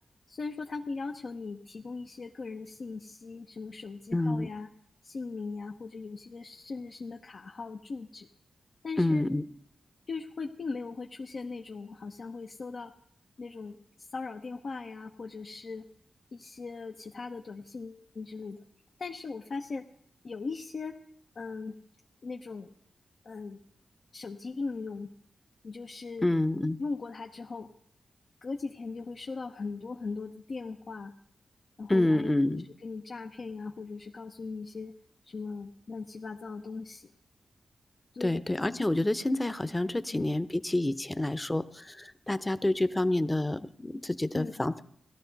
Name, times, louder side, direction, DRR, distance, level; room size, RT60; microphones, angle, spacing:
voice 1, 0.3-4.7 5.0-8.3 8.8-9.3 10.1-12.9 13.4-13.7 14.1-15.8 16.3-18.6 19.0-19.8 20.2-20.9 21.4-21.7 22.2-22.7 23.2-23.6 24.1-25.1 25.6-26.3 26.8-27.7 28.4-31.1 31.8-32.3 32.8-34.9 35.2-37.0 38.1-38.4 40.1-40.3 44.3-44.5, left 4 dB, 65° left, 2 dB, 0.8 m, -39 dB
voice 2, 4.1-4.5 9.0-9.4 26.2-26.8 31.9-32.7 38.2-44.7, left 1 dB, 20° left, 13 dB, 0.8 m, -28 dB
17.0 x 12.5 x 4.1 m, 0.68 s
cardioid pair, 45°, 0 cm